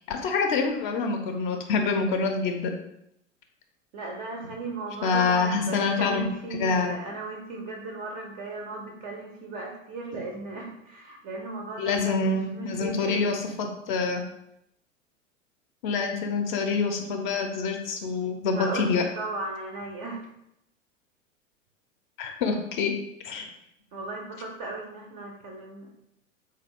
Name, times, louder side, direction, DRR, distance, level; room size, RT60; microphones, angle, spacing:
voice 1, 0.1-2.7 5.0-6.3 6.6-6.9 11.8-14.2 15.8-19.0 22.2-22.9 23.2-23.5, left 4 dB, 40° left, 4 dB, 0.5 m, -26 dB
voice 2, 3.9-13.5 18.5-20.3 23.9-25.9, right 2 dB, 25° right, 1 dB, 0.4 m, -36 dB
3.3 x 2.3 x 3.3 m, 0.79 s
figure-of-eight pair, 90°, 39 cm